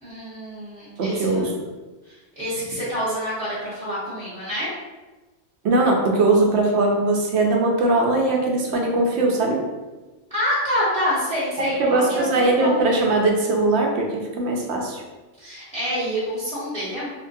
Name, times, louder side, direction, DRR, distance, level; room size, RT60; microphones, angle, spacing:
voice 1, 0.0-1.5 2.0-4.7 10.3-12.8 15.4-17.1, equal, 5° left, -11 dB, 0.9 m, -27 dB
voice 2, 1.0-1.5 5.6-9.6 11.6-15.0, right 2 dB, 70° right, 0 dB, 0.8 m, -20 dB
3.1 x 2.2 x 2.6 m, 1.2 s
omnidirectional pair, 1.2 m